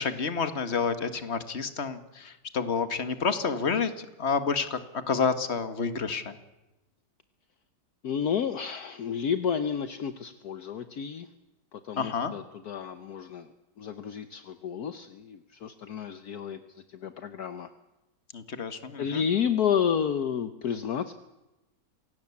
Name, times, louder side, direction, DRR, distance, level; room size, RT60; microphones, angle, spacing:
voice 1, 0.0-6.4 12.0-12.3 18.3-19.2, left 5 dB, 40° left, 11 dB, 1.9 m, -29 dB
voice 2, 8.0-11.3 11.7-17.7 19.0-21.1, left 7 dB, 60° left, 11 dB, 1.4 m, -31 dB
26.5 x 18.0 x 8.5 m, 1.0 s
omnidirectional pair, 1.9 m